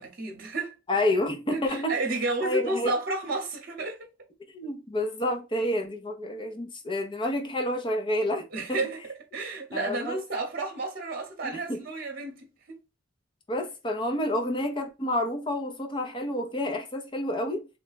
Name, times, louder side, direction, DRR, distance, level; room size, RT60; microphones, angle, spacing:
voice 1, 0.0-0.7 1.5-4.1 8.5-9.0 9.3-12.8, right 2 dB, 50° right, 0.9 m, -31 dB
voice 2, 0.9-1.9 2.4-2.9 4.5-8.8 9.7-10.2 11.4-11.8 13.5-17.7, left 1 dB, 25° left, 0.7 m, -29 dB
3.2 x 2.2 x 4.0 m
head